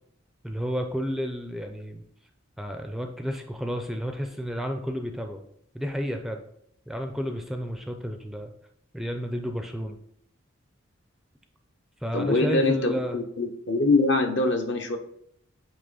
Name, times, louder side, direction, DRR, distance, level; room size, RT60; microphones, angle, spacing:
voice 1, 0.4-2.0 2.6-5.4 5.7-6.4 6.9-8.5 8.9-10.0 12.0-13.2, equal, ahead, 4 dB, 0.5 m, -31 dB
voice 2, 12.1-15.0, left 2 dB, 60° left, 5 dB, 0.9 m, -24 dB
8.8 x 3.0 x 4.0 m, 0.71 s
head